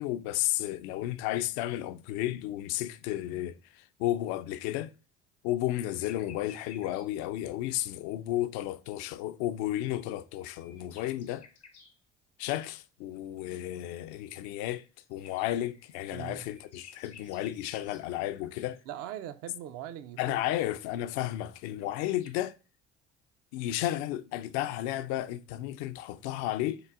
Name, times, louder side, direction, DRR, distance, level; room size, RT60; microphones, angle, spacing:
voice 1, 0.0-4.9 5.4-11.5 12.4-18.8 20.2-22.6 23.5-26.8, left 14 dB, 60° left, 0.4 m, -33 dB
sound 1, 5.7-7.1 9.7-12.0 14.6-18.8 21.4-21.5 21.7-22.3, left 7 dB, 85° left, 0.9 m, -55 dB
voice 2, 16.1-16.5 18.9-20.7 21.2-21.3, right 11 dB, 50° right, 0.5 m, -41 dB
3.8 x 3.8 x 2.2 m
figure-of-eight pair, 55°, 33 cm